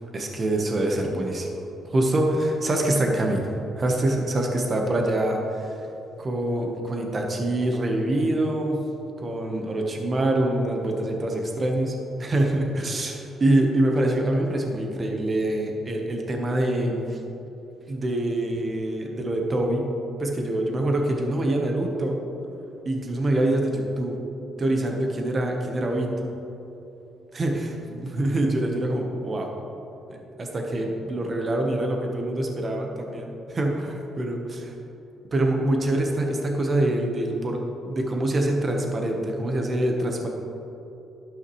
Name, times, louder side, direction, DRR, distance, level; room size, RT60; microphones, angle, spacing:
voice 1, 0.1-1.5 1.8-5.8 6.2-8.8 9.2-17.2 17.9-19.9 20.2-22.2 22.8-24.2 24.6-26.2 27.3-29.5 30.1-34.8 35.3-37.6 37.9-40.3, right 1 dB, 35° right, 1 dB, 1.2 m, -25 dB
12.5 x 5.5 x 3.2 m, 2.9 s
cardioid pair, 90°, 0 cm